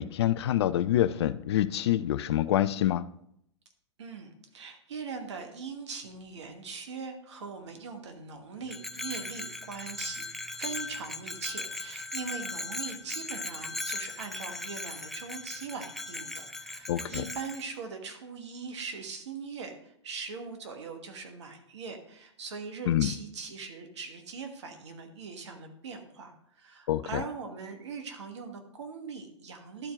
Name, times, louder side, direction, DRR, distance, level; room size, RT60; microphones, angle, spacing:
voice 1, 0.0-3.0 16.9-17.2 22.9-23.1 26.9-27.2, left 12 dB, 65° left, 0.4 m, -26 dB
voice 2, 4.0-10.3 10.6-29.9, right 5 dB, 70° right, 1.3 m, -41 dB
Bell, 8.7-17.6, left 2 dB, ahead, 0.4 m, -38 dB
12.0 x 4.4 x 3.6 m
hypercardioid pair, 105°, 15 cm